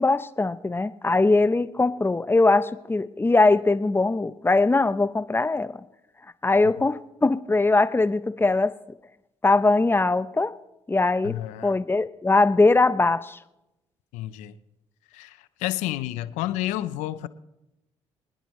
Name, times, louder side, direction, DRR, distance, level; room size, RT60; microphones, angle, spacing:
voice 1, 0.0-5.8 6.4-8.7 9.4-10.5 10.9-11.3 11.6-13.4, left 3 dB, 20° left, 15 dB, 0.6 m, -21 dB
voice 2, 11.2-11.7 14.1-14.6 15.1-17.3, left 14 dB, 90° left, 15 dB, 0.5 m, -30 dB
23.5 x 10.5 x 3.1 m, 0.91 s
supercardioid pair, 55°, 12 cm